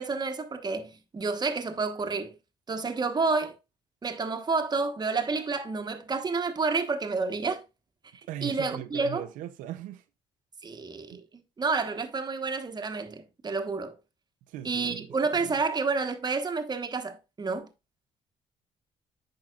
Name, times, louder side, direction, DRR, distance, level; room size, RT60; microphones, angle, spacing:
voice 1, 0.0-2.3 2.7-3.5 4.0-7.6 8.4-9.3 10.6-11.2 11.6-13.9 14.6-17.7, right 4 dB, 30° right, 1.1 m, -29 dB
voice 2, 8.3-10.0 11.1-11.2 14.5-15.1 15.4-15.5, right 12 dB, 90° right, 0.6 m, -39 dB
8.9 x 5.6 x 2.4 m
cardioid pair, 75°, 13 cm